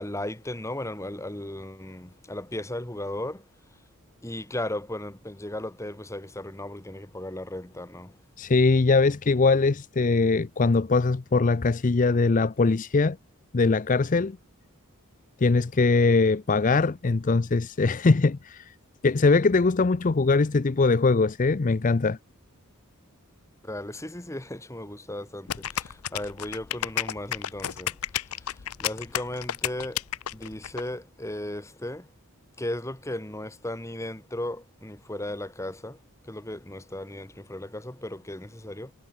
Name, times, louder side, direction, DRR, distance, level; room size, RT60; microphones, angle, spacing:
voice 1, 0.0-3.5 4.2-8.1 23.6-28.0 28.2-30.0 30.3-32.1 32.6-36.0 36.2-38.9, left 1 dB, 15° left, 1.7 m, -36 dB
voice 2, 8.4-13.2 13.5-14.4 15.4-18.7 19.0-22.2, left 3 dB, 35° left, 0.5 m, -22 dB
sound 1, 25.5-30.8, left 11 dB, 80° left, 0.6 m, -31 dB
head